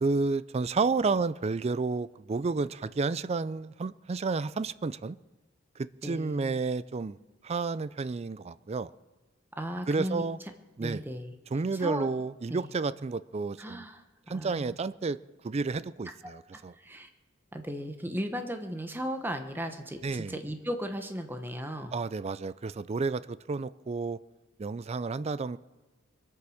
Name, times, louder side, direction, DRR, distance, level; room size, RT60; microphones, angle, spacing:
voice 1, 0.0-5.2 6.0-7.2 7.4-8.9 9.9-10.4 10.8-11.0 11.5-13.8 14.3-15.2 15.4-16.7 20.0-20.3 21.9-24.2 24.6-25.6, right 4 dB, 30° right, 16 dB, 0.4 m, -31 dB
voice 2, 6.0-6.6 9.5-10.3 10.8-11.3 11.7-12.1 12.5-12.7 13.6-14.7 16.0-17.1 17.5-22.0, equal, 10° right, 6 dB, 1.0 m, -36 dB
23.0 x 8.4 x 6.3 m, 1.2 s
head